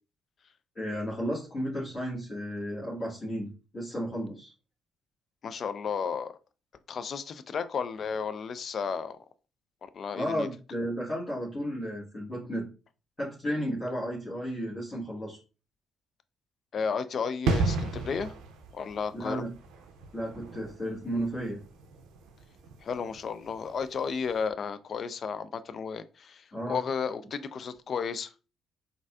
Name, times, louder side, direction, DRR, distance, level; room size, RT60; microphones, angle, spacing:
voice 1, 0.7-4.5 10.1-12.7 13.2-15.4 19.1-19.5 20.1-21.6 26.5-26.8, equal, 35° left, 1.4 m, -33 dB
voice 2, 5.4-6.4 6.9-9.2 9.9-10.5 16.7-18.3 18.7-19.4 22.8-28.3, left 6 dB, 50° left, 0.3 m, -33 dB
sound 1, 17.4-23.9 24.2-24.4, right 3 dB, 70° right, 0.5 m, -34 dB
4.0 x 2.5 x 2.2 m
hypercardioid pair, 45°, 0 cm